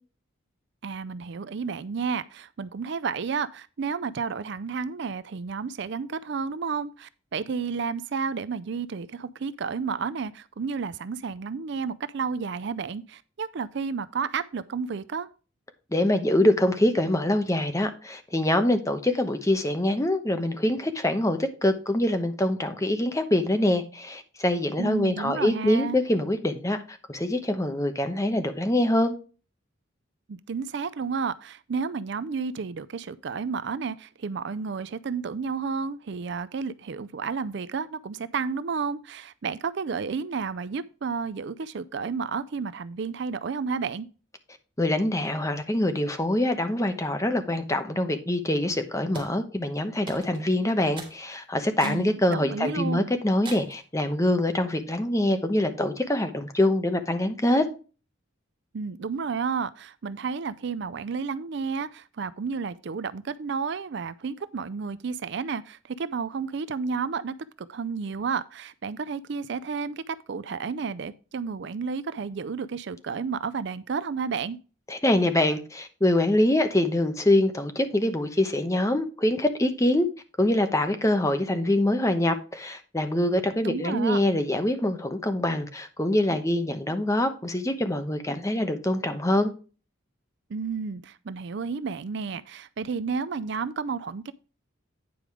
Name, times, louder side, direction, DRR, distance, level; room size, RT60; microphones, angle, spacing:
voice 1, 0.8-15.3 24.8-26.0 30.3-44.1 51.8-53.1 58.7-74.6 83.6-84.2 90.5-94.3, right 5 dB, 55° right, 0.4 m, -31 dB
voice 2, 15.9-29.1 44.8-57.7 74.9-80.1 80.4-89.5, left 1 dB, 15° left, 0.9 m, -24 dB
sound 1, 49.1-49.4 50.1-50.5 51.0-51.2 51.8-52.1 52.6-52.7 53.4-53.8, right 3 dB, 25° right, 2.6 m, -41 dB
9.4 x 5.0 x 4.8 m
head